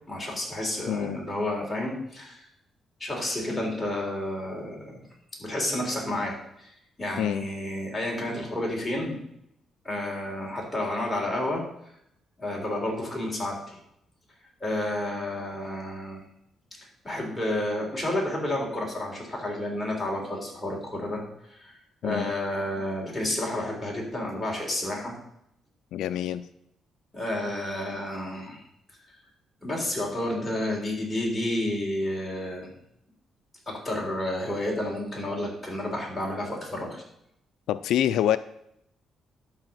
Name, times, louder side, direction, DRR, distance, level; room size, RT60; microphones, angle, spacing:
voice 1, 0.1-2.4 3.0-5.0 5.4-6.7 7.0-9.2 9.8-11.6 12.4-13.8 14.6-16.2 17.0-21.2 21.5-25.1 27.1-28.6 29.6-32.7 33.7-37.0, left 1 dB, 10° left, -2 dB, 3.8 m, -30 dB
voice 2, 0.9-1.2 7.2-7.5 22.0-22.3 25.9-26.4 37.7-38.4, left 11 dB, 85° left, 13 dB, 0.4 m, -26 dB
11.5 x 4.9 x 7.6 m, 0.76 s
cardioid pair, 125°, 0 cm